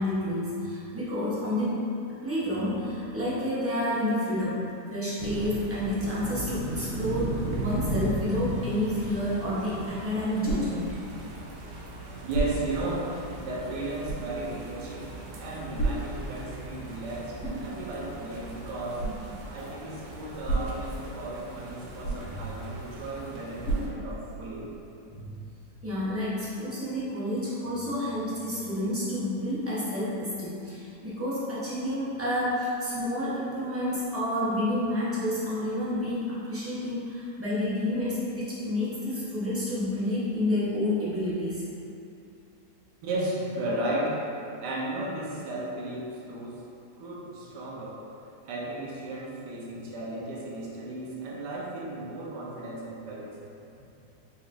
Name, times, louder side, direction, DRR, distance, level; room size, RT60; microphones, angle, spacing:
voice 1, 0.0-1.8 2.2-4.6 4.9-10.9 22.2-22.4 25.1-25.3 25.8-41.6, left 1 dB, 15° right, -10 dB, 0.5 m, -29 dB
sound 1, 5.2-23.9, right 1 dB, 65° right, 0.6 m, -38 dB
sound 2, 9.8-24.7, right 2 dB, 80° left, 2.1 m, -36 dB
voice 2, 12.2-13.1 13.4-15.1 15.4-19.1 19.5-24.7 43.0-44.3 44.6-46.6 47.0-48.1 48.4-53.4, right 2 dB, 85° right, -4 dB, 1.4 m, -34 dB
4.5 x 4.1 x 2.5 m, 2.7 s
omnidirectional pair, 1.8 m